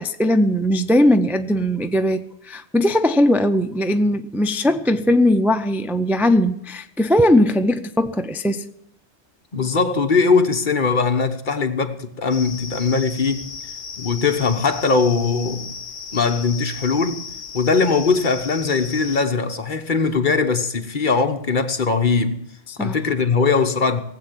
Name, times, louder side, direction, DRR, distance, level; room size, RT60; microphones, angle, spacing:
voice 1, 0.0-8.6 22.7-23.0, left 1 dB, 5° right, 0.3 m, -19 dB
voice 2, 9.5-13.5 14.0-15.7 16.1-17.2 17.5-22.4 22.8-24.0, left 4 dB, 45° left, 1.1 m, -20 dB
sound 1, 12.3-19.2, left 6 dB, 65° left, 1.0 m, -35 dB
18.5 x 8.0 x 7.4 m
omnidirectional pair, 1.2 m